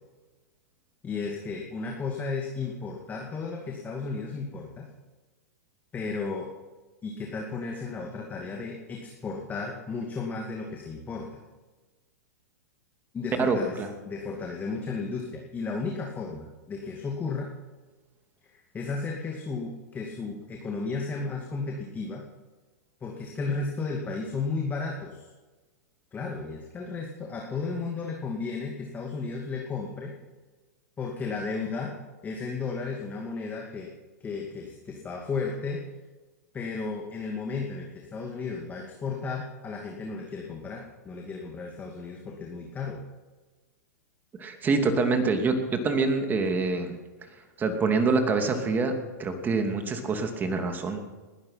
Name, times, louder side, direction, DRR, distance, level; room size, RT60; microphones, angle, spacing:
voice 1, 1.0-4.9 5.9-6.5 7.0-11.3 13.1-17.5 18.4-22.2 23.0-25.2 26.1-30.1 31.0-31.9 32.2-33.9 34.2-35.8 36.5-43.0, left 4 dB, 20° left, 0 dB, 2.3 m, -34 dB
voice 2, 13.4-13.9 44.4-47.0 47.6-48.9 49.2-51.0, right 3 dB, 20° right, 6 dB, 2.6 m, -25 dB
20.0 x 12.0 x 5.8 m, 1.3 s
hypercardioid pair, 115°, 9 cm